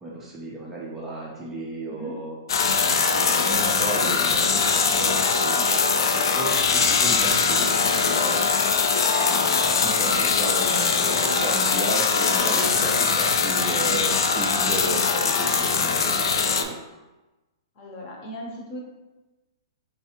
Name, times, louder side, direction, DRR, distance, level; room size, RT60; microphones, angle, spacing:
voice 1, 0.0-2.4 3.1-8.4 9.1-16.7, right 2 dB, 10° right, -5 dB, 0.4 m, -34 dB
voice 2, 1.9-2.2 17.8-18.8, right 1 dB, 35° left, -1 dB, 0.7 m, -38 dB
sound 1, 2.5-16.6, left 5 dB, 85° left, 0.4 m, -22 dB
3.3 x 3.2 x 2.9 m, 1.1 s
hypercardioid pair, 170°, 2 cm